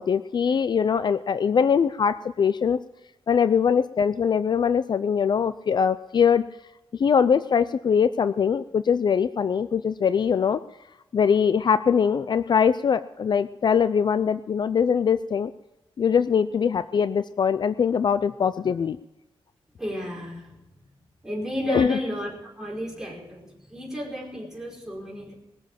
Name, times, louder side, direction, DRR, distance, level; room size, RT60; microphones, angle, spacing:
voice 1, 0.0-2.8 3.3-6.4 6.9-10.6 11.1-15.5 16.0-19.0 21.7-22.0, left 7 dB, 50° left, 13 dB, 0.4 m, -22 dB
voice 2, 19.8-20.6 21.2-25.3, equal, 5° right, -3 dB, 4.9 m, -33 dB
20.5 x 7.4 x 7.4 m, 1.0 s
wide cardioid pair, 155°, 10 cm